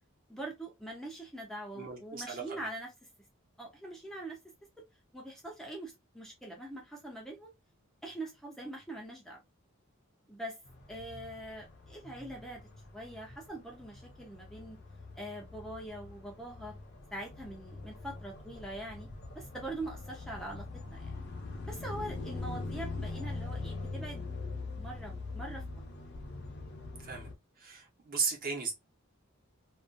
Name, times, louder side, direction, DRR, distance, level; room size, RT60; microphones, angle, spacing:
voice 1, 0.3-2.9 3.6-4.4 5.1-7.5 8.0-9.4 10.3-10.6 10.9-12.6 12.9-14.8 15.1-16.7 17.1-19.1 19.3-21.1 21.6-24.2 24.8-25.8, right 1 dB, ahead, 0.5 m, -43 dB
voice 2, 1.7-2.7 27.0-27.3 27.6-28.7, right 4 dB, 45° right, 1.0 m, -36 dB
sound 1, 10.7-27.3, left 3 dB, 55° left, 0.6 m, -43 dB
2.4 x 2.3 x 2.5 m
head